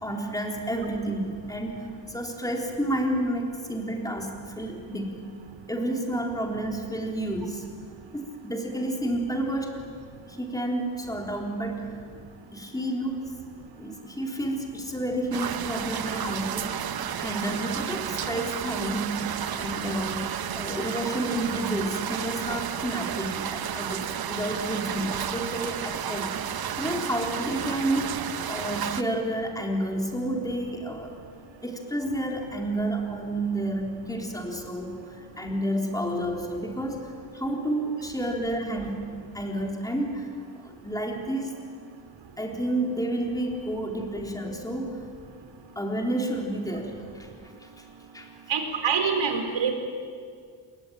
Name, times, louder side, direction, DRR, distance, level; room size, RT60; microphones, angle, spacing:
voice 1, 0.0-5.2 5.7-7.7 8.1-9.8 10.3-11.9 12.5-13.2 13.8-26.4 26.8-28.1 28.5-31.1 31.6-39.1 39.3-40.3 40.6-41.5 42.4-45.0 45.8-47.3 47.6-47.8 48.1-48.3, right 1 dB, 10° left, 1 dB, 3.8 m, -30 dB
sound 1, 15.3-29.0, right 9 dB, 50° right, 1.0 m, -32 dB
voice 2, 48.5-49.7, right 6 dB, 70° right, 5 dB, 4.5 m, -25 dB
28.0 x 22.5 x 8.9 m, 2.1 s
wide cardioid pair, 150°, 46 cm